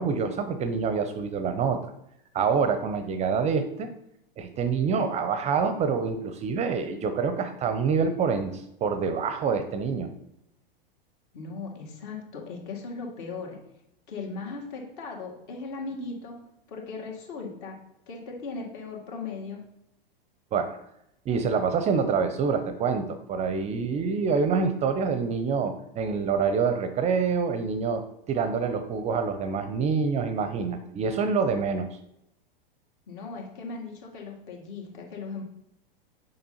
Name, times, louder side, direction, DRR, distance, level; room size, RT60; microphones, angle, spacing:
voice 1, 0.0-1.9 2.3-3.9 4.4-10.1 20.5-20.8 21.3-31.9, right 5 dB, 25° right, 9 dB, 0.5 m, -26 dB
voice 2, 11.3-13.6 14.1-16.3 16.7-17.8 18.1-19.6 33.1-35.4, left 4 dB, 55° left, 0 dB, 2.0 m, -38 dB
6.7 x 5.2 x 2.8 m, 0.79 s
hypercardioid pair, 100°, 29 cm